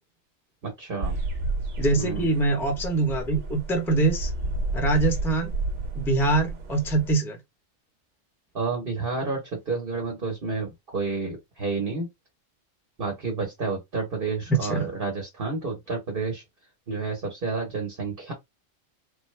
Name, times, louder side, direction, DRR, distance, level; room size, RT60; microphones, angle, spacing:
voice 1, 0.6-1.2 2.0-2.3 6.9-7.0 8.5-12.1 13.0-16.4 16.9-18.3, right 4 dB, 45° right, 1.3 m, -30 dB
sound 1, 1.0-7.1, right 2 dB, 65° right, 1.2 m, -31 dB
voice 2, 1.8-4.3 4.7-5.5 6.0-7.4 14.5-14.8, right 3 dB, ahead, 0.7 m, -24 dB
4.3 x 2.3 x 3.2 m
omnidirectional pair, 1.4 m